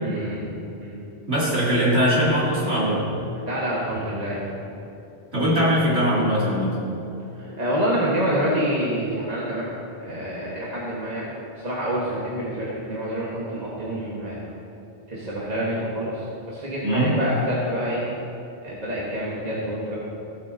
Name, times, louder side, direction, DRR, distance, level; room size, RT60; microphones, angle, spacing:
voice 1, 0.0-0.5 0.8-1.0 3.5-4.6 7.3-9.7 10.0-14.4 15.1-18.0 18.6-20.0, equal, 40° right, -6 dB, 1.3 m, -27 dB
voice 2, 1.3-3.0 5.3-6.7 16.8-17.2, equal, 90° right, -8 dB, 2.8 m, -21 dB
15.0 x 8.2 x 2.6 m, 2.8 s
omnidirectional pair, 1.1 m